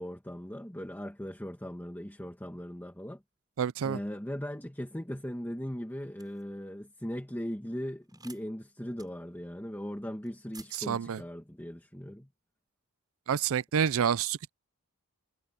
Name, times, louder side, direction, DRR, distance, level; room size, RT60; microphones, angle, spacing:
voice 1, 0.0-3.2 3.8-12.3, equal, 10° left, 1.9 m, -39 dB
voice 2, 3.6-4.0 10.9-11.2 13.3-14.5, right 7 dB, 65° right, 0.4 m, -28 dB
sound 1, 6.2-6.4 8.1-8.4 9.0-9.1 10.2-10.3 10.5-10.9, right 4 dB, 20° right, 7.6 m, -50 dB
head